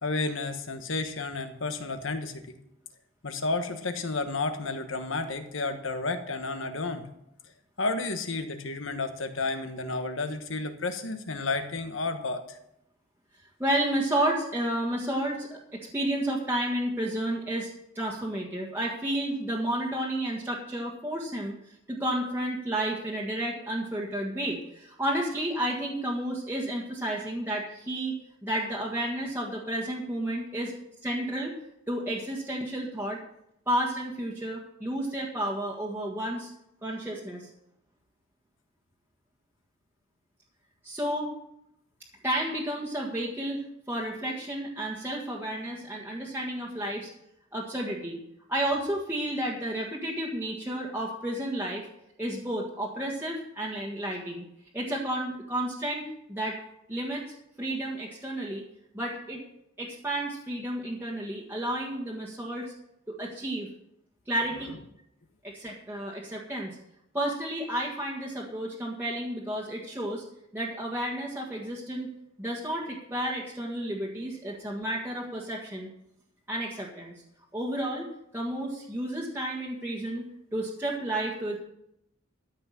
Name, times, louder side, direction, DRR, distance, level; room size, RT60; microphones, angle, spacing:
voice 1, 0.0-2.5 3.2-7.0 7.8-12.6, left 3 dB, 70° left, 8 dB, 1.3 m, -31 dB
voice 2, 13.6-17.7 17.9-30.7 31.0-31.5 31.9-33.2 33.7-36.5 36.8-37.5 40.8-41.3 42.2-47.1 47.5-48.2 48.5-51.8 52.2-54.4 54.7-56.6 56.9-57.2 57.6-58.6 58.9-59.4 59.8-62.7 63.1-63.7 64.3-64.7 65.4-66.8 67.1-70.2 70.5-72.1 72.4-75.9 76.5-77.1 77.5-78.1 78.3-81.6, right 1 dB, 10° right, -4 dB, 1.6 m, -31 dB
13.5 x 5.9 x 7.5 m, 0.79 s
head